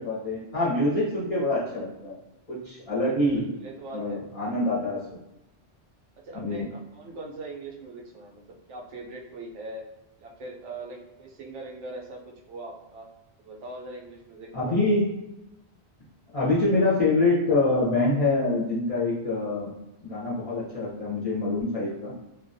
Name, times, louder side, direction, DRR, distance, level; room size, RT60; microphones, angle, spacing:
voice 1, 0.0-2.2 2.5-3.5 3.9-5.0 6.3-6.7 14.5-15.1 16.3-19.7 20.0-22.1, left 2 dB, 40° left, -7 dB, 0.5 m, -25 dB
voice 2, 3.0-4.2 6.2-8.4 8.7-9.8 10.2-13.1 13.4-15.0 21.0-21.1, right 2 dB, 85° right, 0 dB, 0.9 m, -41 dB
2.2 x 2.2 x 2.5 m, 0.92 s
omnidirectional pair, 1.2 m